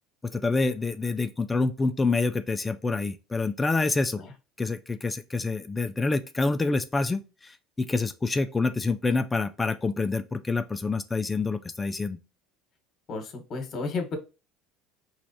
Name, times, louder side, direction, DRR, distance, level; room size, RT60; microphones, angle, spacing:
voice 1, 0.3-4.2 4.6-12.2, left 3 dB, 15° left, 0.3 m, -27 dB
voice 2, 13.1-14.2, left 3 dB, 40° left, 1.3 m, -32 dB
4.8 x 3.1 x 2.8 m
supercardioid pair, 115°, 0 cm